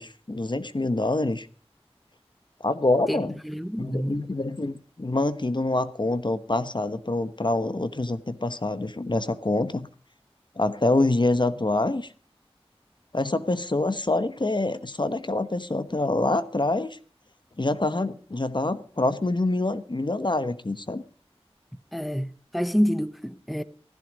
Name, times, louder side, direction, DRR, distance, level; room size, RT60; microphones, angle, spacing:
voice 1, 0.0-1.5 2.6-3.4 3.8-9.9 10.6-12.1 13.1-17.0 17.6-21.0, left 2 dB, 50° left, 1.1 m, -26 dB
voice 2, 3.4-4.2 21.9-23.6, equal, ahead, 0.8 m, -27 dB
16.0 x 14.0 x 5.2 m
wide cardioid pair, 50°, 10 cm